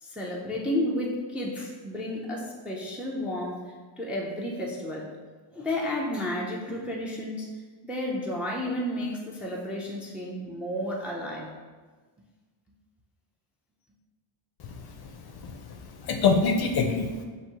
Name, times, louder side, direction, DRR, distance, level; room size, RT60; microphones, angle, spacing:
voice 1, 0.0-3.6 4.0-5.1 5.5-7.5 7.9-11.5, left 1 dB, 5° right, -3 dB, 0.4 m, -32 dB
voice 2, 15.4-15.8 16.0-17.2, left 4 dB, 50° left, 4 dB, 0.5 m, -25 dB
6.0 x 2.6 x 2.8 m, 1.4 s
cardioid pair, 130°, 49 cm